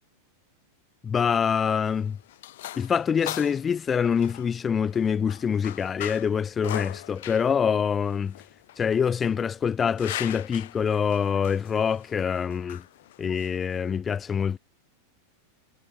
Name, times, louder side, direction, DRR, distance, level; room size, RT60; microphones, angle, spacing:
voice 1, 1.0-2.2 2.8-8.4 8.8-12.8 13.2-14.6, left 7 dB, 20° left, 0.7 m, -25 dB
sound 1, 1.7-14.0, left 15 dB, 55° left, 2.0 m, -40 dB
figure-of-eight pair, 90°, 0 cm